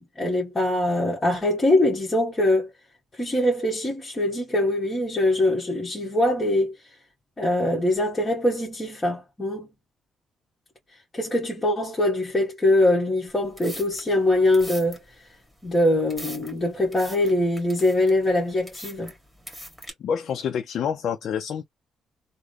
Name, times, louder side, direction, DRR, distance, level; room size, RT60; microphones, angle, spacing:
voice 1, 0.0-2.7 3.1-6.7 7.4-9.7 11.1-15.0 15.6-19.1, left 1 dB, 25° left, 1.6 m, -23 dB
sound 1, 13.3-19.9, equal, 5° right, 2.1 m, -43 dB
voice 2, 20.0-21.6, left 7 dB, 65° left, 0.6 m, -27 dB
3.6 x 2.2 x 3.3 m
cardioid pair, 90°, 0 cm